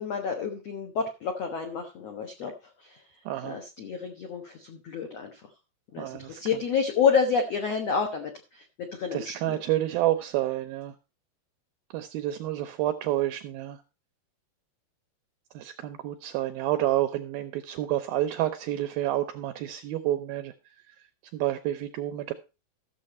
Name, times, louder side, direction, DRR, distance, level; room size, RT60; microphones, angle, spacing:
voice 1, 0.0-2.5 2.8-3.0 3.4-5.4 5.9-9.6, left 6 dB, 80° left, 4 dB, 1.4 m, -29 dB
voice 2, 3.3-3.6 6.0-6.4 9.1-10.9 11.9-13.8 15.6-20.5 21.3-22.3, right 14 dB, 80° right, 9 dB, 2.2 m, -29 dB
14.0 x 7.0 x 4.2 m, 0.29 s
omnidirectional pair, 4.9 m